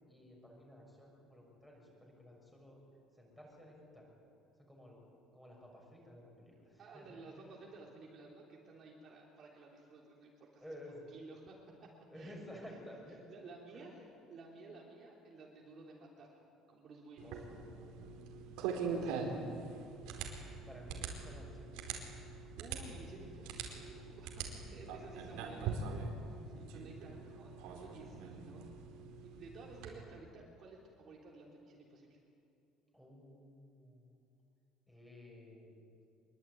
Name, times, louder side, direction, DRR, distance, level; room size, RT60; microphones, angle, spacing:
voice 1, 0.1-2.8 3.1-4.1 4.6-5.0 5.3-7.5 10.6-11.1 12.1-13.2 13.7-14.1 17.2-18.2 18.8-19.1 20.2-22.1 24.7-25.2 26.3-27.0 29.7-29.9 32.9-34.1 34.9-35.8, left 1 dB, 5° left, -1 dB, 6.6 m, -54 dB
voice 2, 6.8-10.6 11.1-12.4 13.3-17.3 18.8-19.6 22.3-25.8 26.5-28.7 29.2-32.2, right 3 dB, 35° right, -2 dB, 3.7 m, -54 dB
sound 1, 17.2-29.9, right 5 dB, 90° right, 4.6 m, -43 dB
25.0 x 23.0 x 9.6 m, 2.5 s
cardioid pair, 165°, 0 cm